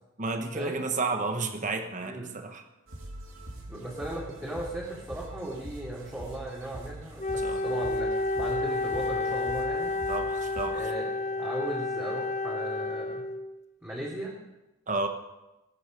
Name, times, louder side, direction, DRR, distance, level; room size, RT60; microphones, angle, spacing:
voice 1, 0.2-2.6 7.4-7.6 10.1-10.8 14.9-15.1, right 3 dB, 40° right, 6 dB, 1.2 m, -31 dB
voice 2, 2.0-2.4 3.7-9.9 10.7-13.2 13.8-14.3, right 1 dB, 10° right, -6 dB, 2.7 m, -37 dB
sound 1, 2.9-10.7, right 1 dB, 75° right, 2.6 m, -44 dB
Wind instrument woodwind instrument, 7.2-13.6, left 2 dB, 35° left, 0.7 m, -30 dB
19.5 x 8.9 x 5.3 m, 0.99 s
head